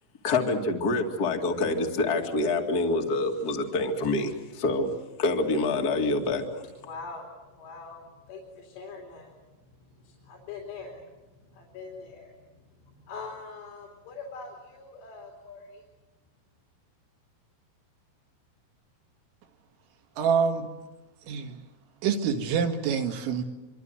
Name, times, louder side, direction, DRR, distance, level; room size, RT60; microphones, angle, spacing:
voice 1, 0.2-4.9 5.2-6.4, left 2 dB, 40° left, 3 dB, 1.4 m, -26 dB
voice 2, 6.8-9.3 10.0-11.1 11.5-12.4 12.9-15.8, left 4 dB, 80° left, 0 dB, 5.5 m, -43 dB
voice 3, 20.2-20.7 21.3-21.6 22.0-23.4, right 6 dB, 75° right, 4 dB, 4.3 m, -26 dB
25.5 x 24.5 x 8.0 m, 1.1 s
omnidirectional pair, 5.6 m